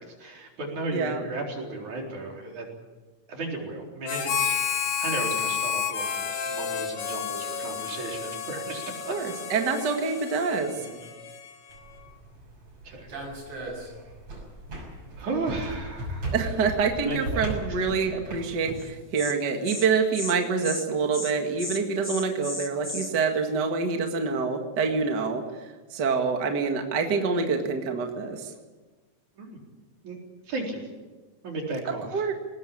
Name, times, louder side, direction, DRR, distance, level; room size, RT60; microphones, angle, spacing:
voice 1, 0.2-2.7 3.3-9.2 10.1-10.2 10.8-11.0 12.8-13.1 15.2-16.3 17.1-17.4 17.7-17.8 29.4-29.6 30.0-30.2 30.5-30.8 31.4-32.2, right 2 dB, 75° right, 0 dB, 5.5 m, -34 dB
voice 2, 0.9-1.2 9.1-10.7 16.3-25.4 25.9-28.5 32.1-32.3, right 5 dB, 40° right, 3 dB, 2.2 m, -26 dB
Harmonica, 4.1-11.8, left 7 dB, 70° left, 3.0 m, -31 dB
sound 1, 11.7-18.8, right 2 dB, 60° right, 7.3 m, -37 dB
Insect, 18.8-18.9 19.2-19.3 19.6-19.9 20.1-20.3 20.6-20.9 21.1-21.3 21.6-23.1, left 1 dB, 10° left, 1.1 m, -34 dB
21.0 x 19.0 x 8.6 m, 1.3 s
omnidirectional pair, 3.4 m